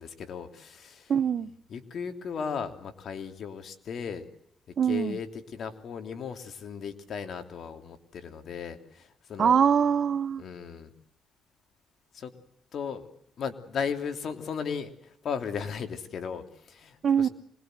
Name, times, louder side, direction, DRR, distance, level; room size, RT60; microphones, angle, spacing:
voice 1, 0.0-1.1 1.7-4.3 4.9-9.6 10.4-10.9 12.1-12.3 12.7-13.1 13.4-17.3, left 6 dB, 60° left, 8 dB, 3.1 m, -36 dB
voice 2, 1.1-1.5 4.8-5.2 9.4-10.4 17.0-17.3, right 7 dB, 55° right, 16 dB, 1.0 m, -23 dB
26.0 x 21.0 x 7.9 m, 0.71 s
cardioid pair, 90°, 0 cm